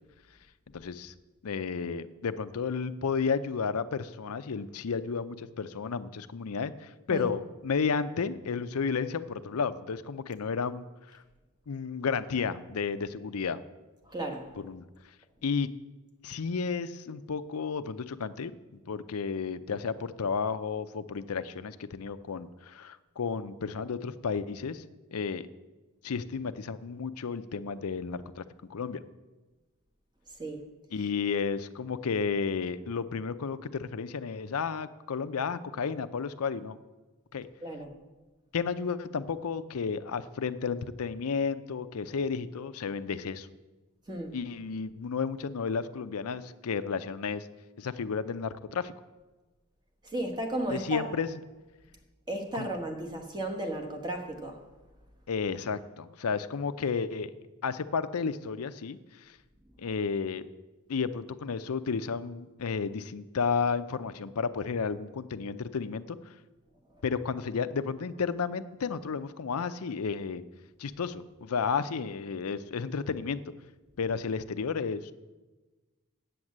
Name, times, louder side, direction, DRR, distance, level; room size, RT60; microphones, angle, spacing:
voice 1, 0.7-1.1 1.4-10.9 11.1-11.2 11.7-13.6 14.6-14.9 15.4-15.7 16.2-18.5 18.9-24.8 25.1-25.5 26.0-28.4 28.7-29.0 30.9-36.8 37.3-37.5 38.5-43.5 44.3-47.5 47.8-48.9 50.7-51.3 52.5-52.7 55.3-57.3 57.6-59.0 59.8-60.5 60.9-66.2 67.0-70.4 70.8-73.4 74.0-75.1, left 5 dB, 80° left, 12 dB, 0.6 m, -32 dB
voice 2, 14.0-14.5 30.4-30.6 37.6-37.9 44.1-44.4 50.0-51.1 52.3-54.6, right 1 dB, 20° right, 3 dB, 1.4 m, -34 dB
8.6 x 8.0 x 7.3 m, 1.2 s
head